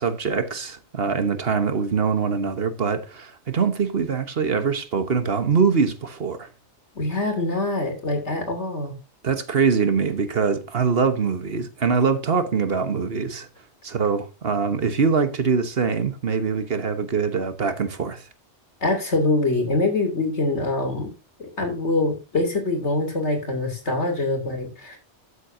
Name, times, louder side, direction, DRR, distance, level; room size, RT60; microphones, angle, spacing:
voice 1, 0.0-6.5 9.2-13.5 13.8-18.2, right 5 dB, 60° right, 1.4 m, -23 dB
voice 2, 6.9-8.9 18.8-21.1 21.4-25.0, left 2 dB, 75° left, 3.4 m, -24 dB
13.0 x 8.1 x 2.7 m
omnidirectional pair, 1.2 m